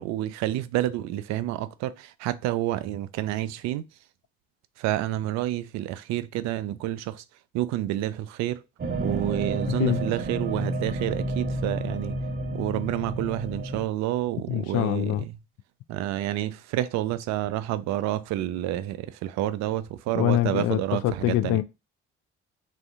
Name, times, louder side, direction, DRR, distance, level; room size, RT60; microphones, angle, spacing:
voice 1, 0.0-3.8 4.8-7.2 7.5-8.6 9.0-12.1 12.5-15.3 15.9-21.6, right 14 dB, 50° right, 0.4 m, -29 dB
sound 1, 8.8-13.8, right 1 dB, 25° right, 0.8 m, -30 dB
voice 2, 14.5-15.2 20.1-21.6, left 14 dB, 45° left, 0.4 m, -24 dB
3.4 x 2.5 x 3.6 m
figure-of-eight pair, 50°, 36 cm